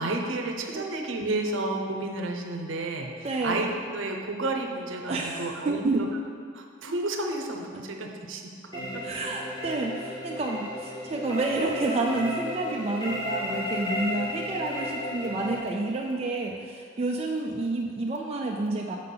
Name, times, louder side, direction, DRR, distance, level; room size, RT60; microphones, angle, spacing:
voice 1, 0.0-6.1 6.5-8.4 8.8-9.0, right 2 dB, 65° right, 2 dB, 0.7 m, -31 dB
voice 2, 3.2-3.6 5.1-6.0 8.7-19.0, right 2 dB, 30° right, 0 dB, 0.3 m, -29 dB
sound 1, 8.7-15.6, left 1 dB, 20° left, 1.0 m, -34 dB
6.5 x 3.8 x 5.6 m, 2.2 s
head